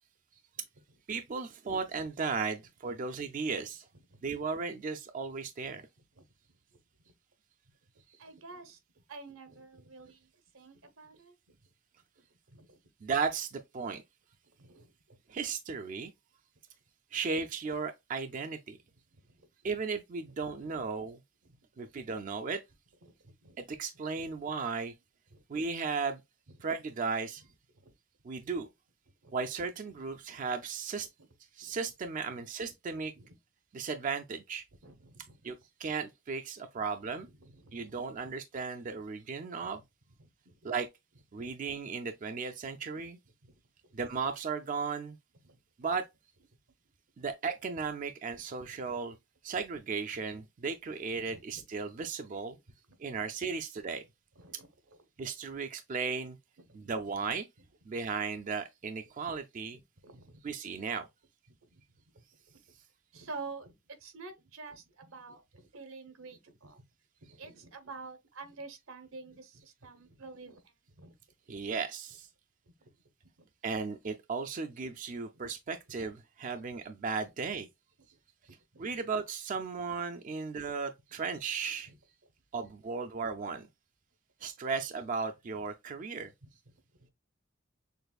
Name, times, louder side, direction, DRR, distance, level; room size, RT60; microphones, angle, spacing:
voice 1, 1.1-3.9 4.2-5.8 8.1-8.2 13.0-14.0 15.3-16.1 17.1-18.8 19.6-21.2 21.8-22.6 23.6-24.9 25.5-26.2 26.6-27.4 28.2-28.7 29.3-31.1 31.5-33.1 33.7-34.6 35.4-37.3 37.7-39.8 40.6-40.9 41.3-43.2 43.9-45.2 45.8-46.1 47.2-49.2 49.4-52.6 53.0-54.0 55.2-56.4 56.7-57.5 57.9-59.8 60.4-61.0 71.5-72.3 73.6-77.7 78.8-81.9 82.5-83.7 84.4-86.3, right 5 dB, 40° right, 0.4 m, -35 dB
voice 2, 8.2-8.8 9.1-11.6 12.2-12.8 14.6-15.2 19.1-19.5 21.4-21.6 23.0-23.6 24.2-24.3 25.3-25.7 27.7-27.9 29.2-29.3 31.6-31.7 33.2-33.3 34.8-35.5 37.4-38.0 40.2-40.7 43.4-43.5 45.4-45.6 48.9-49.0 51.1-51.6 52.9-53.0 54.4-55.0 56.6-56.9 59.7-60.4 61.5-61.8 62.1-62.6 63.1-66.8 67.2-71.1 72.8-72.9 73.4-73.5 77.2-77.3 78.7-78.9 79.5-79.6 81.9-82.0 86.4-86.5 87.0-87.1, right 3 dB, 85° right, 1.0 m, -50 dB
6.5 x 2.5 x 2.3 m
head